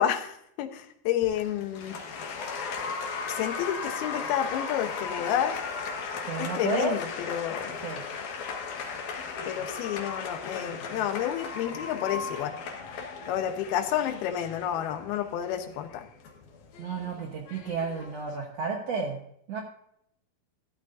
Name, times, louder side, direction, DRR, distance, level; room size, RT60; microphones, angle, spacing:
voice 1, 0.0-2.0 3.3-5.6 6.4-7.8 9.5-12.6 13.3-16.1, left 10 dB, 85° left, 7 dB, 2.9 m, -30 dB
Applause, 1.2-18.4, left 5 dB, 60° left, 2.7 m, -37 dB
voice 2, 6.3-6.9 7.8-8.0 16.8-19.2 19.5-19.6, right 4 dB, 70° right, 1 dB, 1.6 m, -31 dB
14.0 x 12.0 x 2.6 m, 0.73 s
omnidirectional pair, 4.4 m